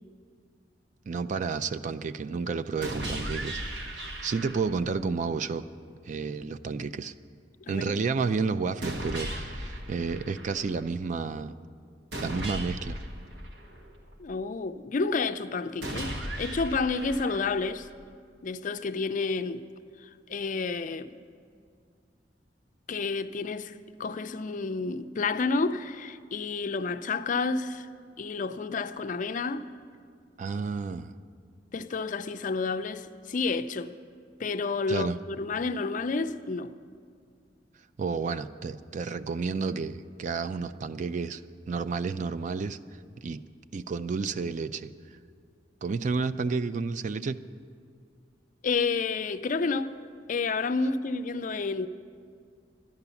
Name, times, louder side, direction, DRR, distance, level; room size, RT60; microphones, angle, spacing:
voice 1, 1.1-3.6 4.2-5.6 6.1-7.1 7.7-11.6 12.2-13.0 30.4-31.1 34.9-35.2 38.0-41.4 41.7-42.8 43.2-43.4 43.7-44.9 45.8-47.4, right 4 dB, 45° right, 0.4 m, -31 dB
sound 1, 2.8-4.8 8.8-10.8 12.1-14.1 15.8-17.8, right 1 dB, 80° right, 1.4 m, -36 dB
voice 2, 14.2-17.9 18.4-19.6 20.0-21.2 22.9-23.7 24.0-27.9 28.2-29.7 31.7-33.9 34.4-36.7 48.6-49.9 50.3-51.9, left 4 dB, 45° left, 0.4 m, -30 dB
12.0 x 11.0 x 7.0 m
head